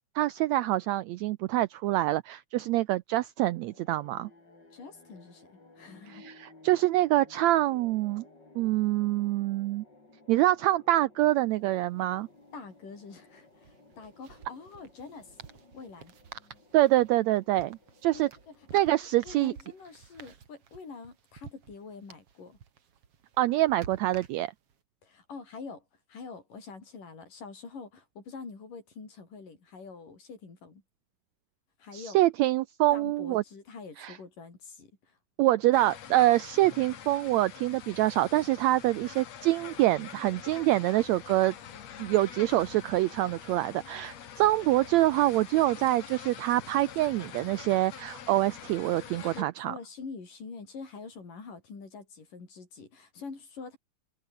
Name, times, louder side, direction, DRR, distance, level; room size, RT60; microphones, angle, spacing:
voice 1, 0.1-4.3 6.1-8.2 8.5-9.8 10.3-12.3 16.7-18.3 18.7-19.5 23.4-24.5 31.9-33.4 34.0-34.2 35.4-41.5 42.0-49.7, right 16 dB, 85° right, 1.6 m, -25 dB
sound 1, 3.5-20.1, left 2 dB, 30° left, 6.7 m, -57 dB
voice 2, 4.7-6.2 12.5-15.4 15.7-16.1 18.1-18.5 19.2-22.6 25.0-30.8 31.8-32.2 32.9-35.2 49.3-53.8, left 4 dB, 80° left, 7.6 m, -45 dB
sound 2, 11.6-11.7 11.9-12.1 13.5-24.8, right 7 dB, 50° right, 3.0 m, -51 dB
sound 3, 35.7-49.4, left 9 dB, 55° left, 2.9 m, -45 dB
omnidirectional pair, 3.7 m